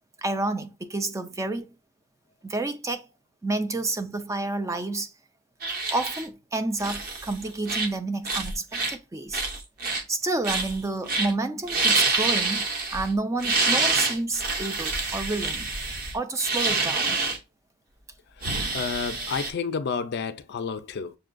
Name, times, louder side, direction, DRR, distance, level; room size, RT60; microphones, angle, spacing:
voice 1, 0.2-1.7 2.4-3.1 3.4-5.1 5.9-9.4 10.1-15.7 16.1-17.2, right 2 dB, 15° right, 0.3 m, -29 dB
sound 1, 5.6-6.3 6.8-7.3 7.7-8.0 8.3-8.9 9.3-10.0 10.4-10.8 11.1-11.3 11.6-13.1 13.4-17.4 18.4-19.5, right 3 dB, 45° right, 0.7 m, -27 dB
voice 2, 18.4-21.2, left 5 dB, 55° left, 0.4 m, -31 dB
6.6 x 2.2 x 2.5 m
head